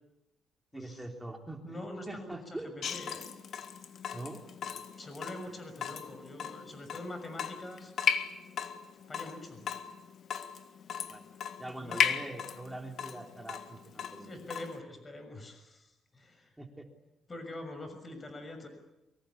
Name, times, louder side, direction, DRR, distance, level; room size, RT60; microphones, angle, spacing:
voice 1, 0.7-2.7 4.1-4.4 11.1-11.2 11.6-14.3 16.6-16.8, right 2 dB, 10° right, 3 dB, 3.4 m, -43 dB
voice 2, 1.6-3.3 5.0-7.9 9.1-9.6 11.6-12.0 14.2-16.5 17.3-18.7, left 1 dB, 30° left, 8 dB, 6.3 m, -44 dB
Water tap faucet / Drip, 2.8-14.8, left 7 dB, 60° left, 1.7 m, -36 dB
23.5 x 23.5 x 8.5 m, 0.95 s
cardioid pair, 90°, 0 cm